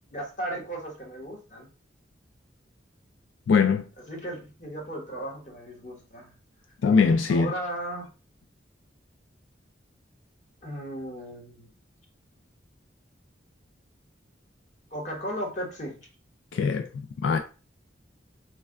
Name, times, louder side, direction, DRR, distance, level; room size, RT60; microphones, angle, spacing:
voice 1, 0.1-1.7 4.1-6.3 7.3-8.1 10.6-11.7 14.9-16.0, right 1 dB, 40° left, 1.2 m, -35 dB
voice 2, 3.5-3.8 6.8-7.5 16.5-17.4, left 5 dB, 90° left, 0.3 m, -22 dB
3.3 x 2.2 x 3.6 m
head